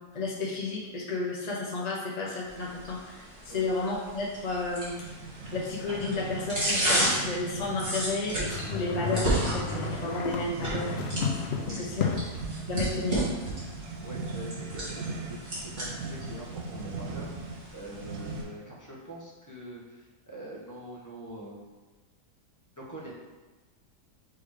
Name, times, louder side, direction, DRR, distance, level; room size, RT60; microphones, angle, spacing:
voice 1, 0.1-4.9 5.5-10.9 11.7-12.1 12.7-13.3, left 3 dB, 30° left, -4 dB, 0.8 m, -32 dB
sound 1, 2.5-18.4, right 1 dB, 35° right, 2.5 m, -34 dB
sound 2, 5.0-18.7, right 3 dB, 70° right, 0.7 m, -39 dB
sound 3, 8.4-12.5, left 5 dB, 65° left, 0.6 m, -33 dB
voice 2, 11.6-12.2 14.0-21.6 22.8-23.1, right 1 dB, 10° left, -5 dB, 1.1 m, -44 dB
6.2 x 3.5 x 4.9 m, 1.2 s
omnidirectional pair, 1.8 m